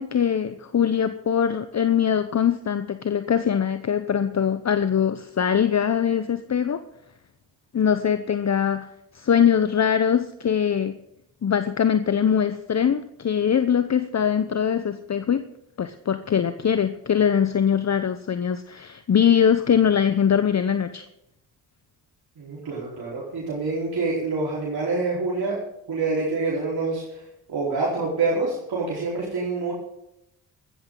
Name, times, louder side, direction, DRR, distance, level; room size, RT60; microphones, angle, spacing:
voice 1, 0.0-6.8 7.7-8.9 9.1-10.9 11.4-15.5 15.8-21.1, left 8 dB, 40° left, 11 dB, 0.9 m, -22 dB
voice 2, 22.4-25.6 25.9-27.0 27.5-29.7, right 3 dB, 55° right, -5 dB, 4.4 m, -26 dB
15.5 x 13.5 x 3.9 m, 0.82 s
hypercardioid pair, 45°, 44 cm